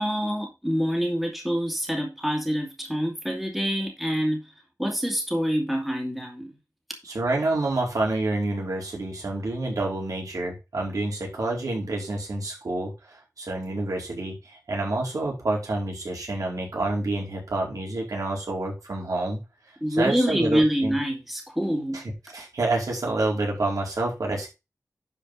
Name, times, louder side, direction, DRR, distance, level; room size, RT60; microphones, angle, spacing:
voice 1, 0.0-4.5 4.8-6.5 19.8-22.0, equal, ahead, 2.6 m, -26 dB
voice 2, 7.0-19.4 19.9-21.0 21.9-24.5, right 2 dB, 70° right, 4.5 m, -28 dB
11.5 x 5.1 x 4.2 m
wide cardioid pair, 105°, 6 cm